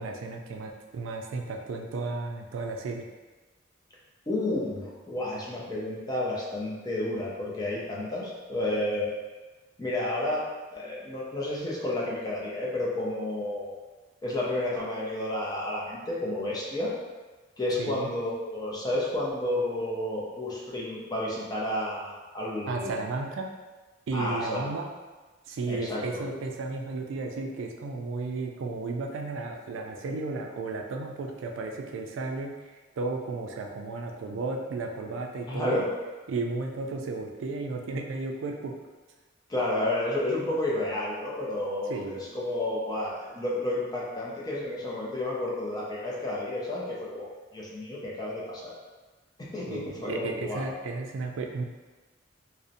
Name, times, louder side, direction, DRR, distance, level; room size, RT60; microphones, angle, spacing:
voice 1, 0.0-3.1 17.8-18.1 22.7-23.5 24.1-24.9 25.5-32.5 33.0-35.8 36.3-38.7 41.9-42.2 49.7-51.6, right 3 dB, 75° right, 2 dB, 0.3 m, -34 dB
voice 2, 4.3-9.1 9.8-10.4 10.7-13.7 14.2-16.9 17.6-23.0 24.1-24.7 25.7-26.2 35.5-35.9 39.5-48.7 49.4-50.6, left 1 dB, 20° left, -5 dB, 0.4 m, -31 dB
2.6 x 2.0 x 2.5 m, 1.2 s
head